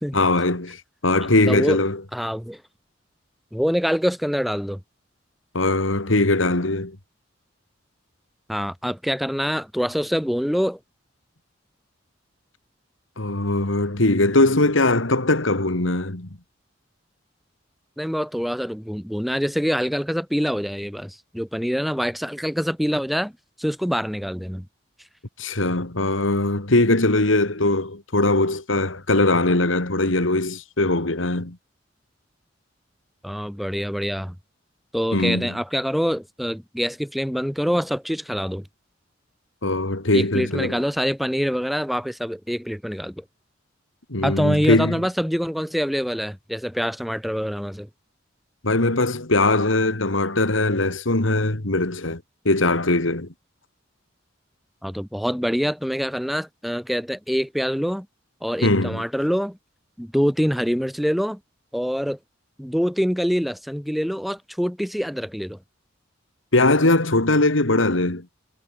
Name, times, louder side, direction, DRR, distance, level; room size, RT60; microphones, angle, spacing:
voice 1, 0.1-2.0 5.5-7.0 13.2-16.3 25.4-31.6 35.1-35.6 39.6-40.8 44.1-45.0 48.6-53.3 58.6-59.0 66.5-68.3, left 2 dB, 85° left, 2.5 m, -21 dB
voice 2, 1.5-1.8 2.1-2.6 3.5-4.8 8.5-10.8 18.0-23.3 23.6-24.7 33.2-34.4 34.9-38.7 40.1-43.2 44.2-47.9 54.8-58.1 58.4-59.6 60.0-61.4 61.7-62.2 62.6-65.6, equal, ahead, 2.5 m, -25 dB
head